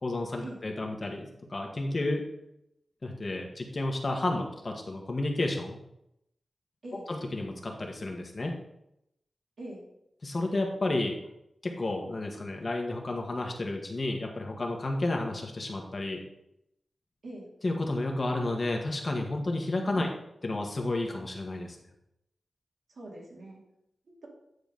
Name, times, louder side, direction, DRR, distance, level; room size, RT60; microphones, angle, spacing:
voice 1, 0.0-2.2 3.0-5.8 7.1-8.5 10.2-11.2 11.6-16.2 17.6-20.1 20.4-21.8, left 2 dB, 40° left, 1 dB, 1.2 m, -31 dB
voice 2, 22.9-23.6, right 1 dB, 75° right, -3 dB, 2.3 m, -42 dB
9.5 x 4.0 x 5.2 m, 0.80 s
wide cardioid pair, 110°, 0 cm